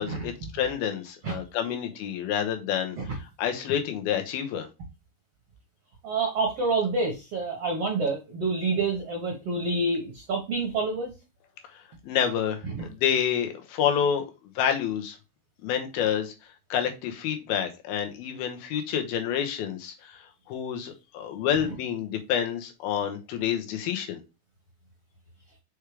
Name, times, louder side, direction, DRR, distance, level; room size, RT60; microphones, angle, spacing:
voice 1, 0.0-3.0 3.4-4.7 12.1-14.2 14.6-15.2 15.6-16.3 16.7-19.9 20.5-24.2, left 9 dB, 75° left, 3.0 m, -28 dB
voice 2, 6.0-11.1 12.6-12.9 21.6-21.7, right 3 dB, 55° right, 1.9 m, -28 dB
6.5 x 4.9 x 3.3 m
omnidirectional pair, 4.5 m